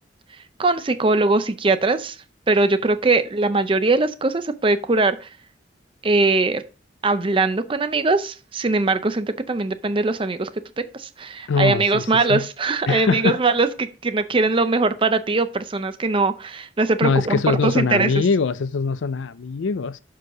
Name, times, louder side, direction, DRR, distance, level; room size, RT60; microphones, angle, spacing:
voice 1, 0.6-2.2 2.5-5.3 6.0-6.6 7.0-10.5 11.0-18.1, right 3 dB, 30° right, 0.5 m, -21 dB
voice 2, 11.5-12.0 12.3-12.5 12.9-13.4 17.0-20.0, left 4 dB, 90° left, 0.5 m, -22 dB
6.4 x 4.7 x 4.8 m
head